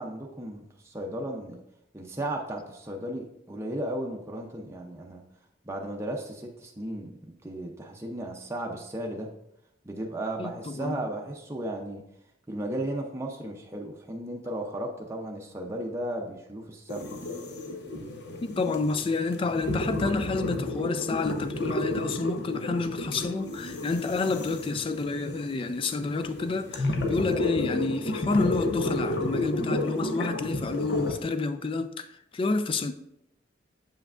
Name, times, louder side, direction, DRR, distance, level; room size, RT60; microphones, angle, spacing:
voice 1, 0.0-1.6 1.9-5.2 5.6-9.3 9.8-12.0 12.5-17.1, right 1 dB, 15° right, 0.6 m, -35 dB
voice 2, 10.4-11.1 18.4-32.9, left 3 dB, 30° left, 0.3 m, -29 dB
sound 1, 16.9-31.1, left 2 dB, 65° left, 0.8 m, -32 dB
7.1 x 5.6 x 2.5 m
head